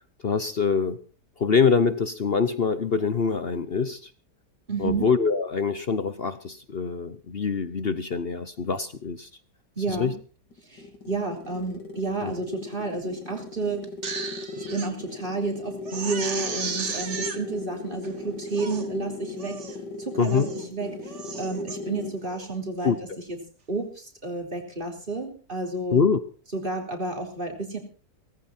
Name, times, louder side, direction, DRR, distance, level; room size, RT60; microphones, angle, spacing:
voice 1, 0.2-1.0 1.4-4.1 4.8-9.3 9.9-10.1 12.2-12.3 20.2-20.5 22.8-23.0 25.9-26.2, left 5 dB, 45° left, 13 dB, 0.9 m, -24 dB
voice 2, 4.7-5.1 9.8-10.1 10.7-13.9 14.6-19.6 20.0-20.4 20.7-20.9 21.4-22.9 23.3-23.4 23.7-26.0 26.5-27.8, right 3 dB, 30° right, 3 dB, 4.1 m, -31 dB
sound 1, 10.5-22.3, left 2 dB, 80° left, 3.2 m, -38 dB
Crying sobbing, 13.8-14.9 15.3-15.4 15.8-17.4 18.0-18.1 18.5-18.9 19.4-19.8 20.2-20.6 21.0-21.8 22.2-22.5, right 5 dB, 45° right, 1.9 m, -34 dB
18.5 x 14.5 x 4.3 m, 0.38 s
omnidirectional pair, 1.8 m